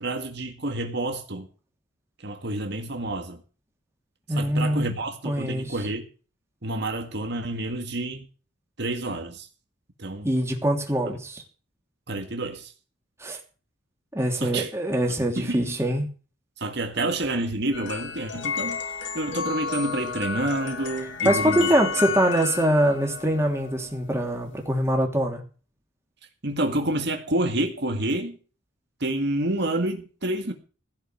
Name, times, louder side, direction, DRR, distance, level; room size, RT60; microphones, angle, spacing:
voice 1, 0.0-1.5 2.2-3.4 4.3-6.1 6.6-8.3 8.8-9.5 10.0-10.3 12.1-12.7 14.4-14.7 15.4-15.6 16.6-18.8 19.1-21.7 26.4-28.4 29.0-30.5, right 1 dB, 55° right, 1.9 m, -28 dB
voice 2, 4.3-4.8 5.2-5.7 10.2-11.4 13.2-13.4 14.1-16.1 21.2-25.4, right 1 dB, 15° right, 2.9 m, -23 dB
sound 1, 17.7-24.9, left 5 dB, 65° left, 2.8 m, -32 dB
16.5 x 5.8 x 9.1 m
head